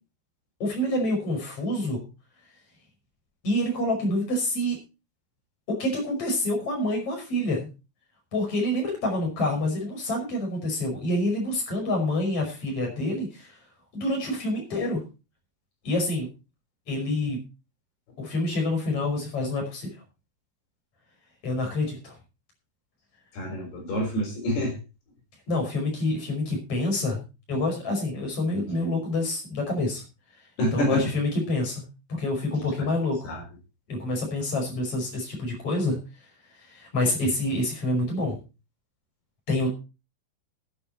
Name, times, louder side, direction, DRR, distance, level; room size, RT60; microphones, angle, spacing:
voice 1, 0.6-2.0 3.4-4.8 5.7-7.7 8.3-13.6 13.9-15.0 15.8-16.3 16.9-17.4 18.2-19.9 21.4-22.2 25.5-30.0 30.7-31.8 32.1-33.3 33.9-36.0 36.6-38.4 39.5-39.7, left 1 dB, 35° left, 1 dB, 6.1 m, -27 dB
voice 2, 23.3-24.8 30.6-31.1 33.2-33.4, equal, 70° left, 1 dB, 6.2 m, -27 dB
20.0 x 6.9 x 4.3 m, 0.31 s
omnidirectional pair, 4.9 m